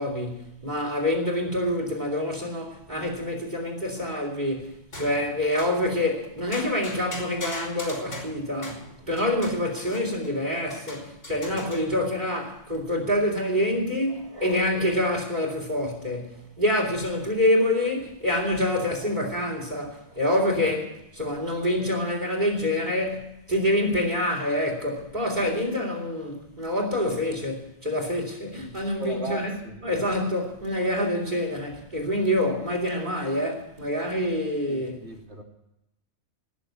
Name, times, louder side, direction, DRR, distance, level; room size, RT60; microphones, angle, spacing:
voice 1, 0.0-29.6 29.8-35.0, left 1 dB, 35° right, 4.0 m, -26 dB
sound 1, 4.0-4.4 4.9-5.8 6.5-10.3 10.7-12.0, left 2 dB, 75° left, 4.4 m, -40 dB
voice 2, 11.5-12.0 20.6-20.7 25.4-25.5 29.0-30.0 34.7-35.4, right 2 dB, 60° right, 3.1 m, -38 dB
18.5 x 7.1 x 9.5 m
omnidirectional pair, 1.3 m